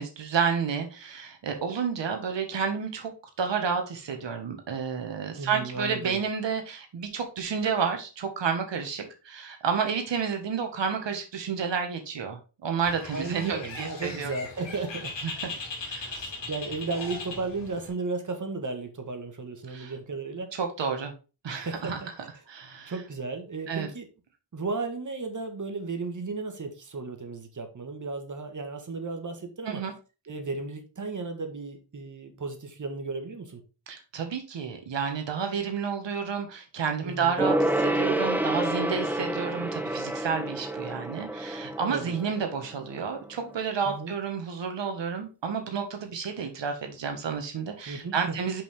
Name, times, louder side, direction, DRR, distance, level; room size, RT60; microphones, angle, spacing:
voice 1, 0.0-14.3 15.9-16.3 19.7-19.9 20.5-21.1 21.4-22.0 22.5-22.9 23.7-23.9 29.7-29.9 33.9-48.6, right 6 dB, 90° right, 5 dB, 1.6 m, -30 dB
voice 2, 5.3-6.2 13.1-15.1 16.1-20.5 21.5-22.1 22.8-24.1 24.5-29.8 30.3-33.6 37.0-37.4 41.9-42.1 43.8-44.1 47.9-48.4, right 3 dB, 45° right, 6 dB, 1.5 m, -34 dB
Bird, 12.8-17.9, left 3 dB, 85° left, 2.2 m, -39 dB
Gong, 37.4-43.3 43.5-43.6, right 1 dB, 5° right, 0.8 m, -29 dB
5.5 x 5.4 x 3.5 m, 0.32 s
wide cardioid pair, 85°, 43 cm